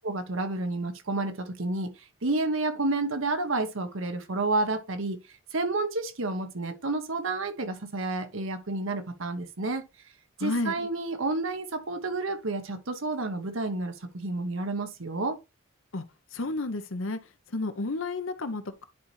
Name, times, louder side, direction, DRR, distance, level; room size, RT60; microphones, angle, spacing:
voice 1, 0.0-1.9 2.2-5.2 5.5-9.8 10.4-15.4, right 2 dB, 70° right, 1.0 m, -30 dB
voice 2, 10.4-10.7 15.9-16.0 16.3-17.2 17.5-18.9, left 2 dB, 70° left, 0.9 m, -31 dB
10.5 x 4.0 x 3.2 m
head